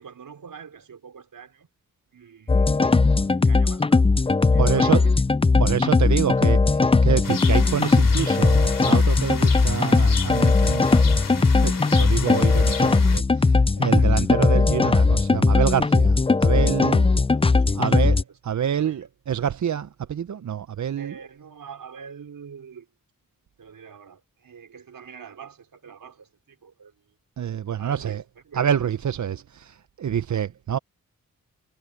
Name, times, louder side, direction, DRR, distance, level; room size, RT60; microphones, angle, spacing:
voice 1, 0.0-1.7 2.1-4.1 4.4-5.2 13.8-14.2 16.9-18.4 18.8-19.1 21.0-22.9 23.6-26.9 27.8-28.7 30.5-30.6, right 6 dB, 85° right, 5.3 m, -44 dB
sound 1, 2.5-18.2, left 3 dB, 15° left, 0.5 m, -19 dB
voice 2, 4.6-5.0 5.6-17.0 17.8-18.2 18.4-21.1 27.4-28.2 28.5-30.8, right 9 dB, 60° right, 0.7 m, -27 dB
sound 2, 7.2-13.2, left 6 dB, 80° left, 3.0 m, -35 dB
cardioid pair, 65°, 33 cm